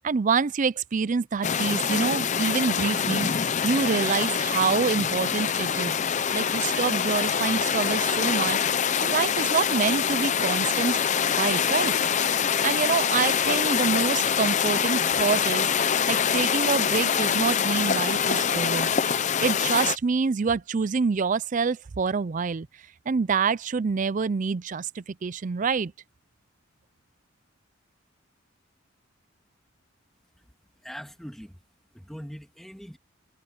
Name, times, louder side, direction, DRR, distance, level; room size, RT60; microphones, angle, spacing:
voice 1, 0.0-5.9 6.3-8.6 9.0-11.0 11.4-11.9 12.6-15.7 16.1-22.7 23.1-25.9, right 5 dB, 40° right, 0.4 m, -26 dB
sound 1, 1.4-20.0, left 7 dB, 35° left, 0.6 m, -25 dB
voice 2, 30.8-31.6 31.9-33.0, equal, ahead, 2.0 m, -42 dB
head